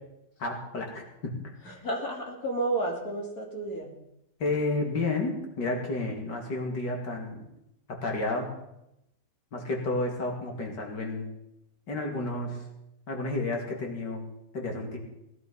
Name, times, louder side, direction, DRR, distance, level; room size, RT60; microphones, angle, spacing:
voice 1, 0.4-1.3 4.4-7.5 7.9-8.5 9.5-11.3 11.9-12.6 13.1-14.2 14.5-15.0, left 2 dB, 85° left, 1 dB, 3.1 m, -31 dB
voice 2, 1.6-3.9, right 2 dB, 60° left, 0 dB, 3.4 m, -31 dB
18.5 x 11.0 x 5.6 m, 0.84 s
omnidirectional pair, 1.8 m